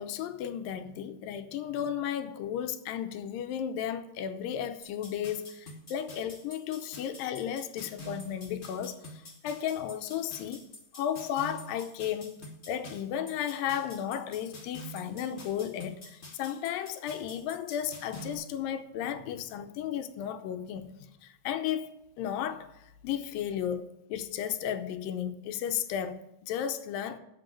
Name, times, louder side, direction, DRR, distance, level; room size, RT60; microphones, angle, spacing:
voice 1, 0.0-10.6 10.9-27.2, left 9 dB, 85° left, 2.4 m, -34 dB
sound 1, 4.8-18.3, equal, 30° left, 1.4 m, -47 dB
7.7 x 7.6 x 8.7 m
omnidirectional pair, 4.0 m